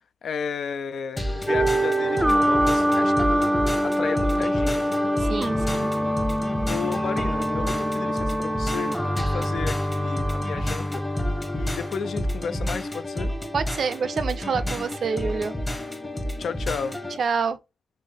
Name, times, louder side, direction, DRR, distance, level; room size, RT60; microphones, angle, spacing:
voice 1, 0.2-3.5 3.8-4.8 6.7-11.0 11.5-13.3 16.4-17.0, left 6 dB, 70° left, 0.3 m, -33 dB
sound 1, 1.2-17.2, left 1 dB, 10° left, 0.8 m, -30 dB
sound 2, 1.5-12.5, equal, 5° right, 0.4 m, -25 dB
voice 2, 5.2-5.9 13.5-15.5 17.2-17.6, right 5 dB, 65° right, 0.5 m, -27 dB
5.4 x 2.0 x 3.4 m
wide cardioid pair, 110°, 0 cm